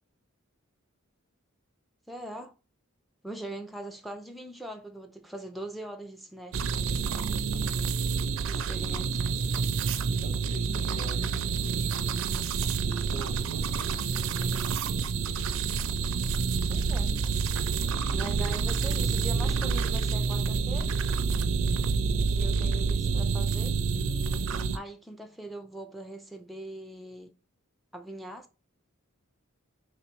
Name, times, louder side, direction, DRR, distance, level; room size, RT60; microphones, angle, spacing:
voice 1, 2.1-2.5 3.2-6.7 8.4-9.2 16.7-17.1 18.1-20.9 22.3-23.8 24.7-27.3 27.9-28.5, right 1 dB, ahead, 0.4 m, -41 dB
sound 1, 6.5-24.8, right 5 dB, 70° right, 0.4 m, -28 dB
voice 2, 9.0-9.5 10.2-11.9 13.0-13.9, right 1 dB, 70° left, 1.9 m, -45 dB
3.2 x 3.0 x 4.5 m
head